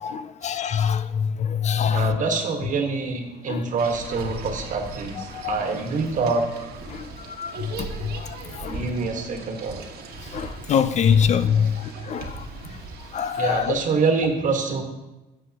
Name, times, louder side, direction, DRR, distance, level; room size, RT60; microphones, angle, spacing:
voice 1, 0.0-2.1 5.3-5.6 7.4-7.5 7.8-7.9 8.6-8.8 10.3-12.3 13.1-13.7, left 7 dB, 45° left, 0.4 m, -23 dB
voice 2, 1.9-6.5 8.7-9.8 11.6-11.7 13.3-14.8, right 4 dB, 50° right, 1.4 m, -25 dB
sound 1, 3.8-13.8, right 3 dB, 70° right, 1.3 m, -38 dB
12.0 x 7.4 x 2.9 m
cardioid pair, 110°, 17 cm